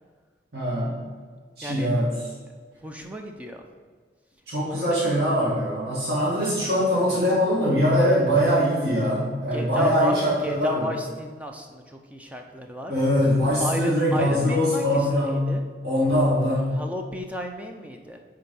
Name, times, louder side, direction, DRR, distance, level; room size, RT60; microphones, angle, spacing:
voice 1, 0.5-1.0 1.6-2.1 4.5-10.9 12.9-15.5 15.8-16.8, equal, 60° right, -8 dB, 2.0 m, -22 dB
voice 2, 2.8-3.6 4.7-5.2 9.5-12.9 13.6-15.6 16.8-18.2, equal, 10° right, 3 dB, 0.5 m, -33 dB
8.6 x 3.9 x 5.3 m, 1.5 s
head